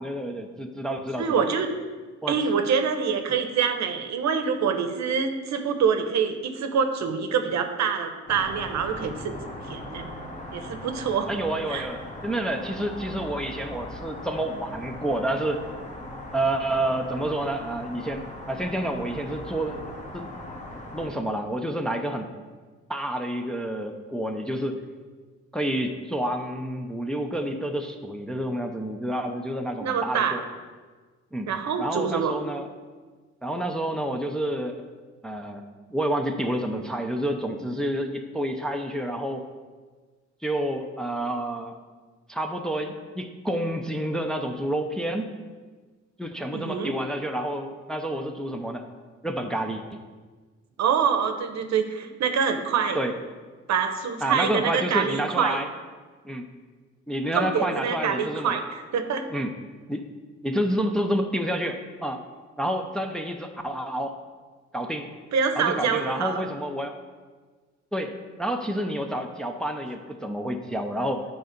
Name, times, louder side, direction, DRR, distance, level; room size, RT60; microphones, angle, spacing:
voice 1, 0.0-1.5 2.2-2.4 11.3-15.6 16.3-20.3 20.9-22.3 22.9-24.8 25.5-30.4 31.3-31.5 31.8-32.7 33.4-34.7 35.2-35.6 35.9-39.5 40.4-41.7 42.3-45.3 46.2-48.8 49.2-49.8 52.9-53.1 54.2-55.7 56.2-56.4 57.1-58.6 59.3-59.5 59.9-60.1 60.4-62.2 62.6-64.1 64.7-65.1 65.6-66.9 67.9-71.2, right 1 dB, ahead, 3 dB, 0.6 m, -29 dB
voice 2, 1.2-1.7 2.3-9.4 9.7-10.1 10.5-11.3 11.7-11.9 29.8-30.4 31.5-32.4 46.5-47.0 50.8-53.0 53.7-55.6 57.3-59.2 65.3-66.5, right 6 dB, 65° right, 7 dB, 0.9 m, -25 dB
sound 1, 8.3-21.1, left 1 dB, 25° left, 1.4 m, -39 dB
9.2 x 3.9 x 5.2 m, 1.4 s
cardioid pair, 90°, 30 cm